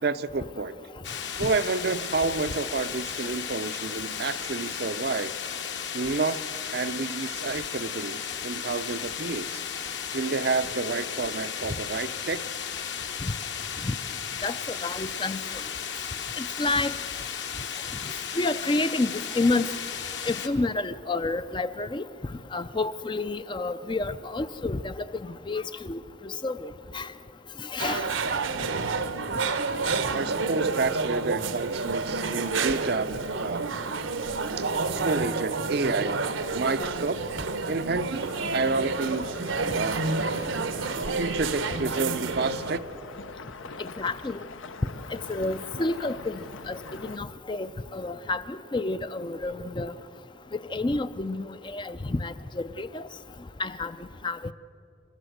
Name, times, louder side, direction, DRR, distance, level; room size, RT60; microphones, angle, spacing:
voice 1, 0.0-0.8 1.4-5.3 5.9-6.4 6.7-9.6 10.1-12.4 30.1-33.6 34.6-36.2 36.5-37.2 37.7-39.3 39.7-40.0 41.2-42.9, right 3 dB, 50° right, 12 dB, 0.6 m, -29 dB
sound 1, 1.0-20.5, left 8 dB, 60° left, 1.4 m, -35 dB
voice 2, 14.8-15.4 16.4-16.9 18.4-19.7 20.3-22.0 22.5-24.9 25.5-25.6 25.9-26.0 26.4-26.7 26.9-27.1 27.7-28.0 43.8-44.4 45.1-46.4 46.7-46.8 47.1-49.9 50.7-53.0 53.6-53.9 54.2-54.5, left 2 dB, 25° left, 12 dB, 0.4 m, -29 dB
sound 2, 27.8-42.8, right 4 dB, 75° right, 1.0 m, -29 dB
sound 3, 38.2-47.2, left 4 dB, 80° left, 0.8 m, -43 dB
28.5 x 13.0 x 7.9 m, 2.9 s
head